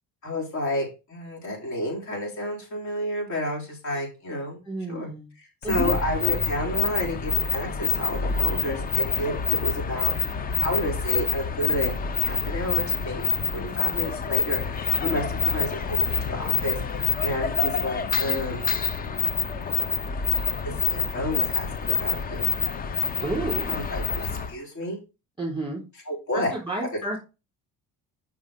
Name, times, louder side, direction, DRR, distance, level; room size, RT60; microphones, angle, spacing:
voice 1, 0.2-4.6 4.9-5.1 5.4-11.9 12.2-18.7 20.6-22.5 23.7-24.0 24.5-25.0 26.1-26.5, left 1 dB, 55° left, -2 dB, 4.5 m, -31 dB
voice 2, 4.7-5.3 5.6-5.9 23.2-23.8 25.4-25.8 26.3-27.2, right 2 dB, 15° right, -1 dB, 3.9 m, -30 dB
sound 1, 5.6-24.5, left 5 dB, 25° left, 0.5 m, -27 dB
6.4 x 6.1 x 5.0 m, 0.29 s
cardioid pair, 165°, 35 cm